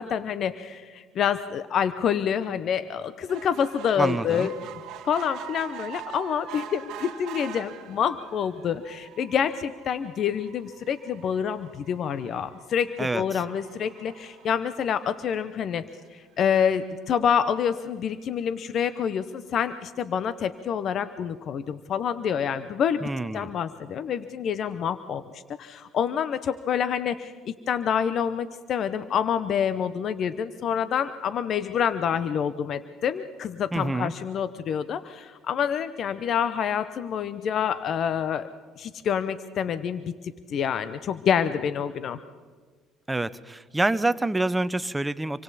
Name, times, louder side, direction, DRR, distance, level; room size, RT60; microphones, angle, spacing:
voice 1, 0.0-4.5 5.0-15.8 16.1-23.1 23.3-38.5 38.8-40.1 40.5-42.2, left 8 dB, 55° left, 13 dB, 0.9 m, -27 dB
sound 1, 3.3-15.9 16.5-16.6 16.8-16.9 17.2-17.3, right 10 dB, 70° right, 1.5 m, -44 dB
voice 2, 4.0-4.5 13.0-13.2 23.0-23.5 33.7-34.1 43.1-45.4, right 2 dB, 10° right, 15 dB, 0.9 m, -27 dB
27.0 x 24.5 x 4.2 m, 1.5 s
supercardioid pair, 70°, 0 cm